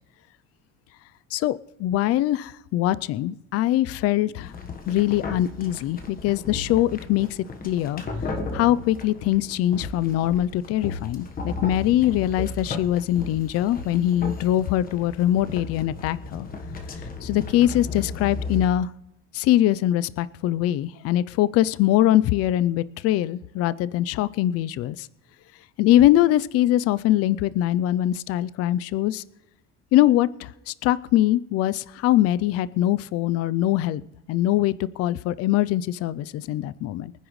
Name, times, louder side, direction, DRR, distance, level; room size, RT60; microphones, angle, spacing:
voice 1, 1.3-4.6 4.9-8.0 8.5-16.5 17.2-18.9 19.3-25.1 25.8-29.2 29.9-34.0 34.3-37.1, left 13 dB, 50° left, 17 dB, 0.5 m, -22 dB
sound 1, 4.4-18.7, left 3 dB, 30° left, 1.3 m, -35 dB
23.5 x 10.0 x 3.2 m, 0.85 s
cardioid pair, 140°, 31 cm